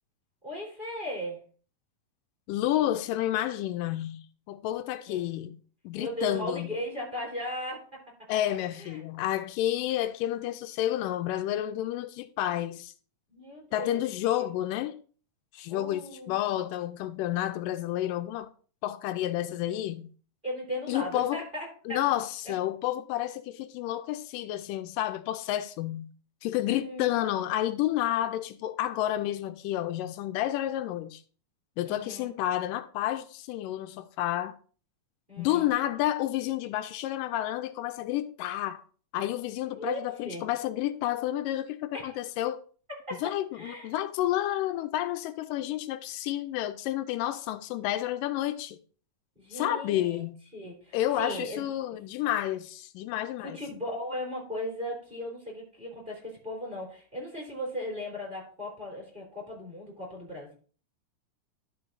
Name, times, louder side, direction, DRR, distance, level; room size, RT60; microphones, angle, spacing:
voice 1, 0.4-1.4 5.1-5.3 6.0-8.0 8.7-9.0 13.3-14.0 15.7-16.6 20.4-22.0 22.4-22.5 26.7-27.3 31.8-32.3 35.3-35.7 39.8-40.4 41.9-42.2 43.1-43.9 49.3-50.2 50.5-51.7 53.4-60.5, equal, 15° right, 3.4 m, -37 dB
voice 2, 2.5-5.6 5.8-6.7 8.3-12.9 13.7-14.9 15.5-18.5 18.8-20.1 20.9-21.4 21.9-26.1 26.4-31.2 31.8-34.6 35.4-38.8 39.1-42.6 43.2-48.8 49.5-50.4 50.9-53.6, left 13 dB, 85° left, 2.2 m, -30 dB
12.0 x 4.6 x 3.8 m
omnidirectional pair, 3.8 m